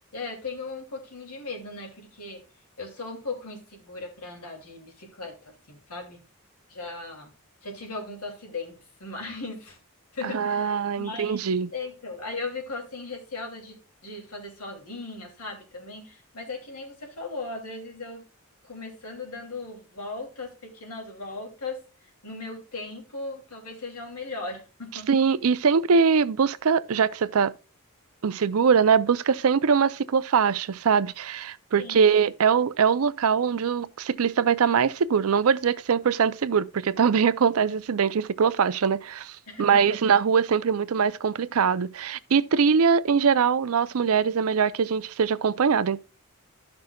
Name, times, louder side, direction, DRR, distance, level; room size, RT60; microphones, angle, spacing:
voice 1, 0.1-2.4 2.8-6.2 6.7-7.3 7.6-9.8 10.1-18.2 18.6-25.1 31.8-32.1 39.5-40.0, left 3 dB, 85° left, 2.7 m, -38 dB
voice 2, 10.2-11.7 25.1-27.5 28.2-46.0, right 6 dB, 70° right, 0.5 m, -22 dB
13.5 x 6.0 x 2.3 m
head